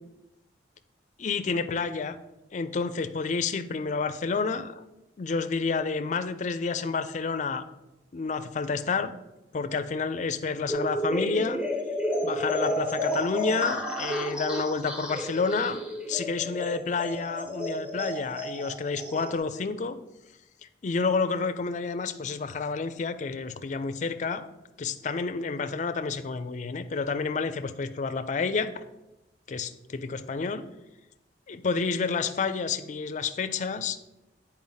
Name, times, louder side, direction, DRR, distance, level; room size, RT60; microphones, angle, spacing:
voice 1, 1.2-2.2 2.5-4.7 5.2-7.6 8.1-9.1 9.5-11.6 12.2-15.8 16.1-20.0 20.8-24.5 24.8-28.7 29.5-30.6 31.5-34.0, left 4 dB, 40° left, 10 dB, 0.4 m, -29 dB
sound 1, 10.7-19.4, equal, 5° right, 0.6 m, -31 dB
8.6 x 4.3 x 4.0 m, 0.97 s
head